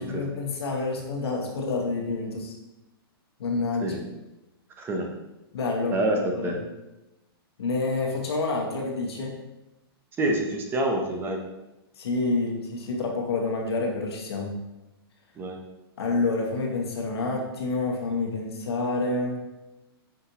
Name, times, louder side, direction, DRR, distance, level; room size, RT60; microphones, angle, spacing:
voice 1, 0.0-2.5 3.4-3.9 5.5-6.6 7.6-9.4 12.0-14.6 16.0-19.4, left 3 dB, 80° left, 0 dB, 0.9 m, -28 dB
voice 2, 4.8-5.1 5.9-6.2 6.4-6.6 10.2-11.4 15.4-15.6, right 1 dB, 15° right, 2 dB, 0.6 m, -27 dB
5.6 x 2.6 x 2.9 m, 0.98 s
hypercardioid pair, 135°, 13 cm